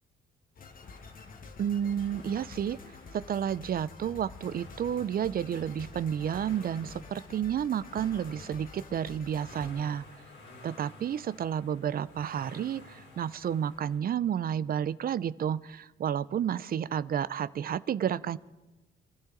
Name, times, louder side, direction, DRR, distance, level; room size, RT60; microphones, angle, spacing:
sound 1, 0.6-9.7, left 4 dB, 45° left, 1.4 m, -49 dB
sound 2, 0.8-14.0, left 2 dB, 75° left, 3.9 m, -53 dB
voice 1, 1.6-2.8 3.1-10.0 10.6-18.4, right 9 dB, 50° right, 18 dB, 0.5 m, -31 dB
26.0 x 13.0 x 3.9 m, 1.1 s
cardioid pair, 90°, 20 cm